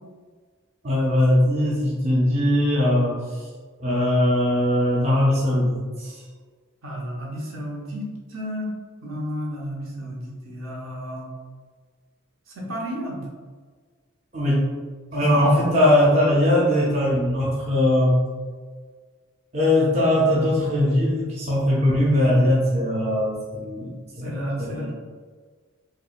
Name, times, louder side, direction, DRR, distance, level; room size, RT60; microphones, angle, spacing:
voice 1, 0.8-3.5 3.8-6.2 14.3-14.7 15.1-18.2 19.5-24.3 24.6-24.9, left 1 dB, 30° right, -6 dB, 0.6 m, -20 dB
voice 2, 6.8-8.7 9.0-11.3 12.5-13.2 15.2-15.5 24.2-24.9, equal, 70° right, -4 dB, 1.0 m, -32 dB
4.6 x 2.3 x 2.4 m, 1.5 s
head